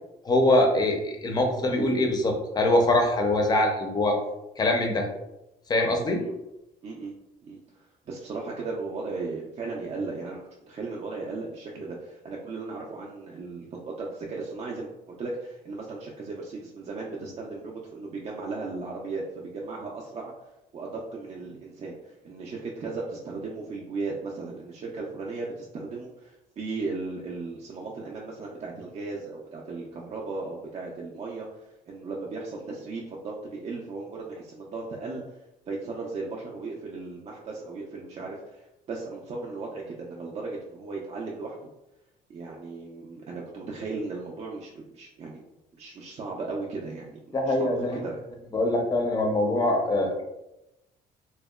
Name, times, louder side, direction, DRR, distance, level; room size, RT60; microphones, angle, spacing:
voice 1, 0.2-4.2 4.6-5.1 5.7-6.2 47.3-48.0 48.5-50.2, left 1 dB, 25° left, 3 dB, 0.5 m, -23 dB
voice 2, 6.8-7.1 7.4-10.4 10.7-20.3 20.7-31.5 31.9-35.2 35.7-41.6 42.3-45.4 45.7-48.2, right 3 dB, 40° right, -2 dB, 0.4 m, -36 dB
2.7 x 2.1 x 2.3 m, 0.92 s
cardioid pair, 110°, 17 cm